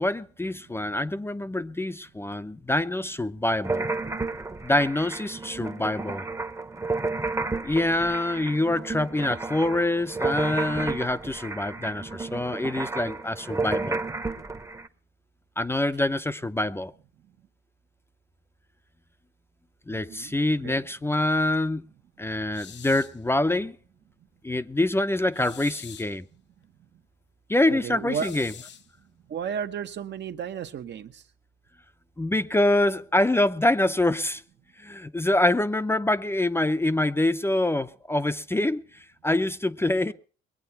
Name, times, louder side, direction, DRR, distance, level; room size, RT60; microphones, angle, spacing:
voice 1, 0.0-3.9 4.6-6.2 7.6-14.0 15.6-16.9 19.9-21.8 22.2-23.8 24.4-26.2 27.5-28.5 32.2-34.4 34.8-38.8 39.2-40.1, left 1 dB, 10° left, 0.6 m, -25 dB
sound 1, 3.6-14.9, right 3 dB, 15° right, 0.9 m, -32 dB
voice 2, 19.9-20.4 20.6-20.8 27.7-28.3 29.3-31.2, right 7 dB, 60° right, 1.0 m, -33 dB
sound 2, 22.5-23.2 25.3-26.2 28.1-28.9, left 9 dB, 65° left, 0.9 m, -45 dB
21.0 x 8.7 x 5.7 m
cardioid pair, 90°, 20 cm